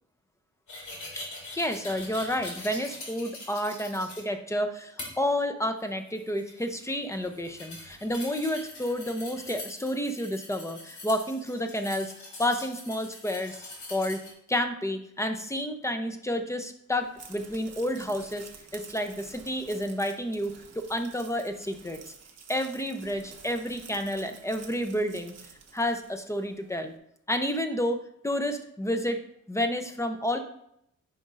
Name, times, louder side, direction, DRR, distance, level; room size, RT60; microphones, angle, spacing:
sound 1, 0.7-4.2 5.0-5.1 5.8-14.3, left 2 dB, 65° left, 2.6 m, -43 dB
voice 1, 1.5-12.1 12.4-14.2 14.5-22.1 22.5-25.3 25.7-26.9 27.3-28.0 28.2-29.2 29.5-30.4, left 1 dB, 10° left, 6 dB, 0.6 m, -30 dB
sound 2, 17.0-26.5, right 5 dB, 55° right, 1.0 m, -50 dB
10.0 x 5.2 x 2.5 m, 0.73 s
wide cardioid pair, 115°, 31 cm